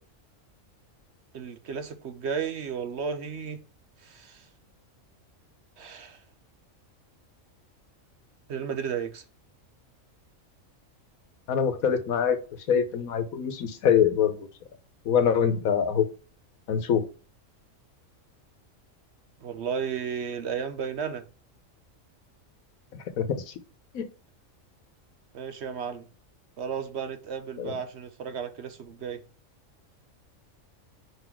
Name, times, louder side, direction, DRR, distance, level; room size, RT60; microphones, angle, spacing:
voice 1, 1.3-3.6 4.0-4.5 5.8-6.2 8.5-9.2 19.4-21.2 25.3-26.1 26.6-29.2, right 6 dB, 60° right, 0.9 m, -33 dB
voice 2, 11.5-12.4 12.7-14.5 15.0-16.1 16.7-17.0 23.1-23.5 23.9-24.1 27.6-27.7, left 7 dB, 85° left, 1.3 m, -24 dB
5.2 x 4.1 x 4.4 m
omnidirectional pair, 1.4 m